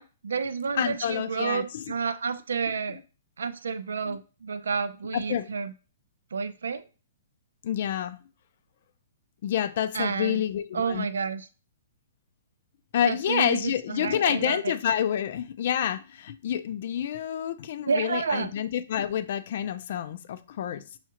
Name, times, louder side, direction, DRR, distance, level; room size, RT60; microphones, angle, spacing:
voice 1, 0.0-3.0 3.4-5.7 6.3-6.9 9.9-10.4 10.7-11.5 13.1-14.7 17.9-18.5, right 5 dB, 90° right, 0.4 m, -30 dB
voice 2, 0.7-1.8 4.1-4.2 5.1-5.5 7.6-8.2 9.4-11.1 12.9-20.8, left 10 dB, 55° left, 0.4 m, -28 dB
5.7 x 2.3 x 2.9 m
hypercardioid pair, 150°, 0 cm